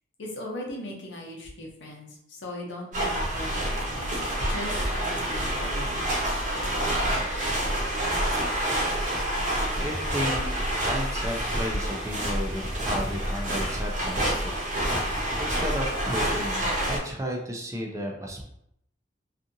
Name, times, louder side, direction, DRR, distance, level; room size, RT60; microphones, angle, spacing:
voice 1, 0.2-6.0, left 1 dB, 90° left, -1 dB, 0.7 m, -39 dB
sound 1, 2.9-17.0, right 1 dB, 45° right, 0.8 m, -28 dB
voice 2, 9.8-10.5 10.9-14.6 15.4-18.5, equal, 15° right, 0 dB, 0.4 m, -33 dB
2.7 x 2.4 x 2.6 m, 0.74 s
head